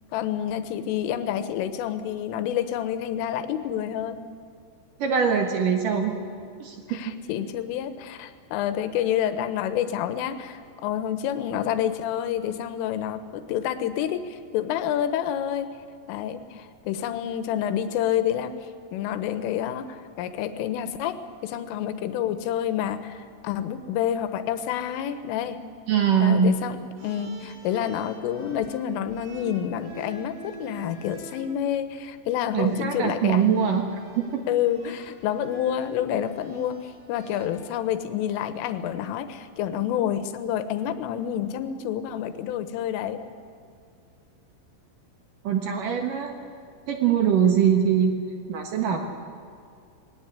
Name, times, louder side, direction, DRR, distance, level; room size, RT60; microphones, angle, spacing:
voice 1, 0.1-4.2 6.9-15.7 16.1-18.5 18.9-25.6 26.2-26.8 27.0-33.5 34.5-43.2, left 10 dB, 85° left, 11 dB, 3.6 m, -28 dB
voice 2, 5.0-6.1 6.4-6.8 25.9-26.5 32.5-33.8 34.2-34.4 45.4-46.4 46.9-48.1 48.5-49.0, right 7 dB, 65° right, 4 dB, 2.2 m, -22 dB
sound 1, 27.0-31.5 32.5-32.7 33.2-38.0, right 4 dB, 85° right, 7.2 m, -46 dB
20.5 x 17.5 x 10.0 m, 2.3 s
omnidirectional pair, 5.7 m